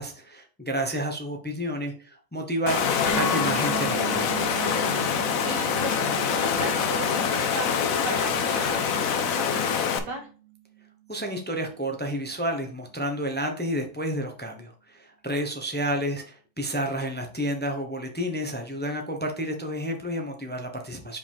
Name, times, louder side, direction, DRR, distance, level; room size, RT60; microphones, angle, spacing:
voice 1, 0.0-2.8 3.1-4.4 11.1-21.2, equal, 15° left, 3 dB, 0.4 m, -30 dB
Water, 2.7-10.0, left 7 dB, 60° left, 0.9 m, -25 dB
sound 1, 3.1-11.2, right 3 dB, 35° left, 1.2 m, -37 dB
voice 2, 5.1-10.3, right 2 dB, 60° right, 1 dB, 2.5 m, -37 dB
5.3 x 5.1 x 3.5 m, 0.38 s
omnidirectional pair, 2.2 m